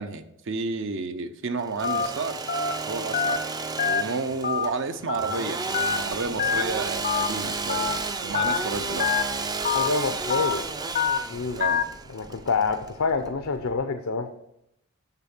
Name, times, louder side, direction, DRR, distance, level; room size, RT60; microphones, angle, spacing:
voice 1, 0.0-2.4 2.9-3.4 3.9-9.1 11.6-11.8, right 3 dB, 60° right, 10 dB, 0.7 m, -31 dB
Engine / Sawing, 1.6-13.3, right 4 dB, 20° right, 0.4 m, -32 dB
Telephone, 1.8-2.1 2.5-2.7 3.1-3.4 3.8-4.0 4.4-4.7 5.1-5.3 5.7-6.0 6.4-6.6 7.0-7.3 7.7-7.9 8.3-8.6 9.0-9.2 9.6-9.9 10.3-10.5 11.0-11.2 11.6-11.8, left 6 dB, 40° left, 0.5 m, -25 dB
sound 1, 5.9-13.8, equal, 85° right, 2.8 m, -50 dB
voice 2, 9.7-10.6 11.3-11.6 12.1-14.3, left 4 dB, 80° left, 6 dB, 0.7 m, -27 dB
7.1 x 6.8 x 5.9 m, 0.80 s
head